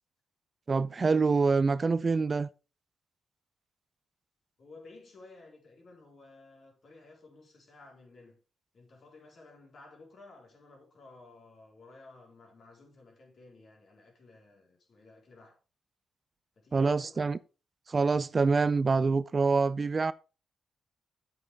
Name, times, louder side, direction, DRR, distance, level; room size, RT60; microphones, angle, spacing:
voice 1, 0.7-2.5 16.7-17.4 17.9-20.1, right 4 dB, 40° right, 0.4 m, -26 dB
voice 2, 4.6-8.4 8.7-15.6 16.6-17.3, left 3 dB, 55° left, 4.0 m, -54 dB
8.1 x 7.7 x 3.5 m
cardioid pair, 75°, 0 cm